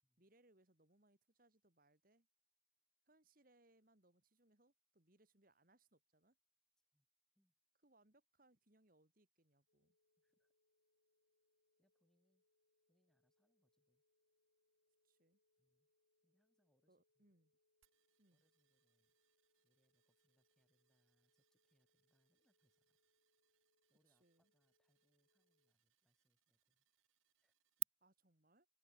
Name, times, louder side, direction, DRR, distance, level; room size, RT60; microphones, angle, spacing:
voice 1, 0.2-2.3 3.1-6.4 7.8-10.0 15.0-15.4 16.9-17.5 18.2-18.4 24.1-24.5 28.0-28.7, right 2 dB, 45° right, 2.6 m, -74 dB
sound 1, 9.7-25.7, left 2 dB, 90° left, 3.7 m, -87 dB
voice 2, 10.2-10.5 11.8-12.4 12.9-14.0 15.6-15.9 16.2-17.2 18.3-19.2 19.6-23.0 23.9-26.9 27.4-27.9, equal, 5° left, 3.3 m, -86 dB
sound 2, 17.8-27.8, right 24 dB, 80° right, 0.5 m, -56 dB
open air
head